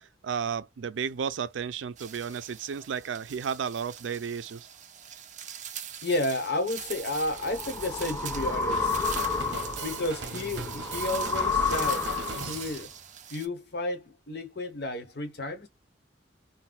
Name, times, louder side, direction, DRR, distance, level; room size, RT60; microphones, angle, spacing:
voice 1, 0.0-4.7, right 7 dB, 90° right, 0.4 m, -33 dB
sound 1, 2.0-13.5, right 9 dB, 40° right, 0.6 m, -42 dB
voice 2, 6.0-9.0 9.8-12.9 13.3-15.7, left 2 dB, 60° left, 1.0 m, -32 dB
sound 2, 6.9-12.7, left 4 dB, 15° left, 0.7 m, -30 dB
Drum kit, 8.7-12.9, right 3 dB, 70° right, 0.8 m, -40 dB
3.9 x 2.2 x 2.2 m
head